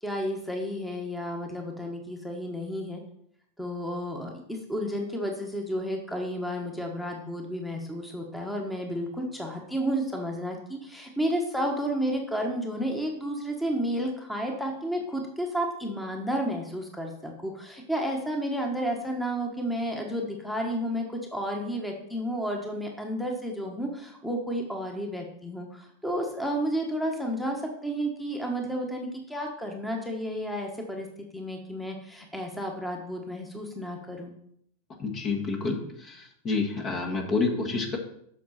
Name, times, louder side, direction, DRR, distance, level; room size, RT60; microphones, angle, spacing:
voice 1, 0.0-3.0 3.6-31.1 31.3-34.3, equal, 5° left, 2 dB, 1.4 m, -31 dB
voice 2, 35.0-38.0, left 4 dB, 35° left, 2 dB, 1.6 m, -29 dB
8.2 x 6.2 x 4.2 m, 0.71 s
figure-of-eight pair, 95°, 0 cm